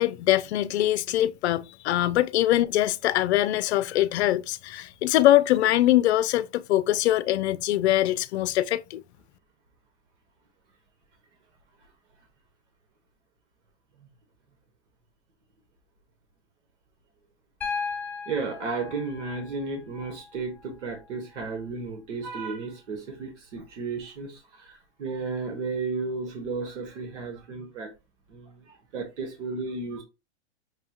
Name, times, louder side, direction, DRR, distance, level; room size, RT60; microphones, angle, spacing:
voice 1, 0.0-9.0, left 14 dB, 70° left, 0.5 m, -23 dB
Piano, 17.6-21.6 23.2-23.3, left 5 dB, 5° left, 1.1 m, -37 dB
voice 2, 18.3-27.9 28.3-30.0, right 4 dB, 90° right, 1.3 m, -33 dB
5.9 x 2.3 x 2.9 m
supercardioid pair, 150°, 35 cm